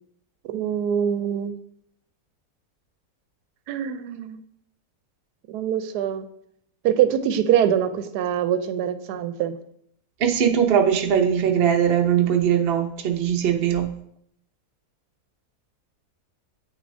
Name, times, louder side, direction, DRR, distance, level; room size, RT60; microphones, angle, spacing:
voice 1, 0.5-1.5 3.7-4.4 5.5-6.2 6.8-9.6, right 9 dB, 80° right, 10 dB, 1.1 m, -24 dB
voice 2, 10.2-13.9, right 8 dB, 55° right, 3 dB, 0.7 m, -20 dB
8.4 x 6.4 x 2.6 m, 0.71 s
omnidirectional pair, 1.7 m